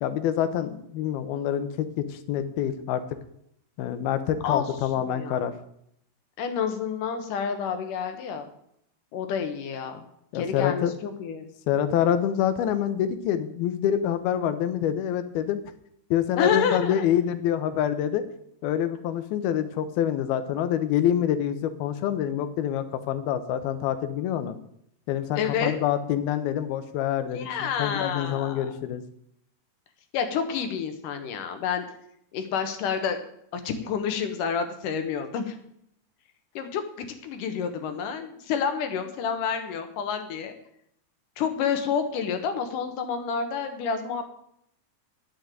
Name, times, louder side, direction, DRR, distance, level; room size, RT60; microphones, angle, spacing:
voice 1, 0.0-3.0 3.8-5.5 10.3-10.9 11.7-15.6 16.1-18.2 18.6-24.6 25.1-29.0, left 10 dB, 85° left, 10 dB, 2.8 m, -26 dB
voice 2, 5.0-5.4 6.4-8.5 9.1-10.0 10.3-11.5 16.4-17.1 25.4-25.7 27.3-28.7 30.1-31.9 32.3-33.2 33.5-35.6 36.6-40.5 41.4-44.3, left 6 dB, 70° left, 7 dB, 2.5 m, -29 dB
9.5 x 7.7 x 9.0 m, 0.73 s
omnidirectional pair, 4.4 m